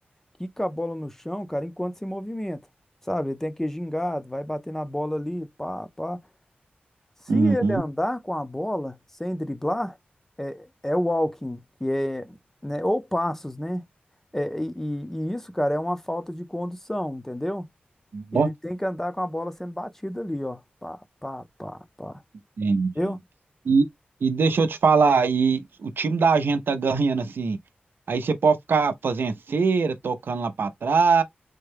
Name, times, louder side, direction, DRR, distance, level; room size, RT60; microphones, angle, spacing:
voice 1, 0.4-2.6 3.1-6.2 7.3-10.0 10.4-12.4 12.6-13.8 14.3-17.7 18.3-22.2 23.0-23.2, left 1 dB, 10° left, 0.4 m, -29 dB
voice 2, 7.3-7.8 18.1-18.5 22.6-23.1 23.6-23.8 24.2-27.6 28.1-31.2, right 4 dB, 85° right, 0.5 m, -22 dB
3.5 x 2.1 x 3.2 m
wide cardioid pair, 100°, 4 cm